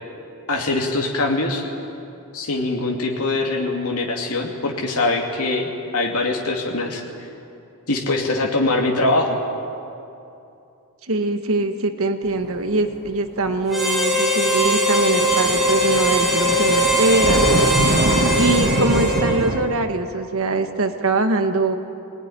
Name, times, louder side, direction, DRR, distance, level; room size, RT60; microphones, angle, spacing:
voice 1, 0.5-1.7 2.3-7.0 7.9-9.4, left 2 dB, 75° left, 0 dB, 2.5 m, -22 dB
voice 2, 11.1-17.4 18.4-21.8, right 2 dB, 65° right, 7 dB, 1.5 m, -22 dB
sound 1, 12.3-12.9 13.1-13.6 14.4-14.6 15.0-19.6, right 2 dB, 50° right, 1.5 m, -23 dB
Harmonica, 13.7-19.6, equal, ahead, 4.3 m, -20 dB
20.0 x 19.5 x 10.0 m, 2.8 s
head